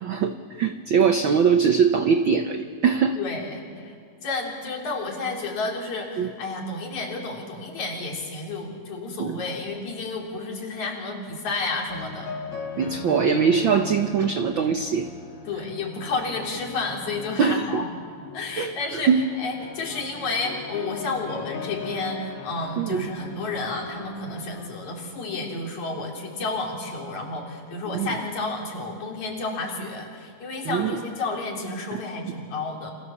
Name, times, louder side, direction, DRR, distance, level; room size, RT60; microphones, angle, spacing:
voice 1, 0.0-3.2 6.2-6.3 9.2-9.4 12.8-15.1 17.4-17.8 18.6-19.2 22.8-23.1 27.9-28.1 30.6-31.0 31.9-32.0 32.3-32.4, right 6 dB, 70° right, 7 dB, 1.1 m, -22 dB
voice 2, 3.2-4.0 4.2-12.4 15.5-17.9 18.3-19.1 19.4-32.9, left 3 dB, 70° left, 0 dB, 4.8 m, -31 dB
sound 1, 11.9-24.7, left 5 dB, 50° left, 3.1 m, -39 dB
29.5 x 27.0 x 7.2 m, 2.1 s
omnidirectional pair, 3.5 m